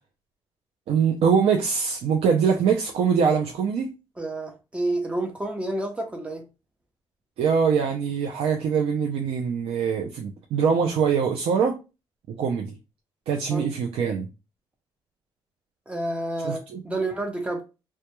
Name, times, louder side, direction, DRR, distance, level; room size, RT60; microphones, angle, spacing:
voice 1, 0.9-3.9 7.4-11.8 12.3-12.8 13.3-14.3 16.4-16.8, right 6 dB, 80° right, 0.4 m, -23 dB
voice 2, 4.2-6.5 13.5-13.7 15.9-17.6, right 2 dB, 10° right, 0.6 m, -29 dB
2.2 x 2.2 x 2.9 m
cardioid pair, 125°, 10 cm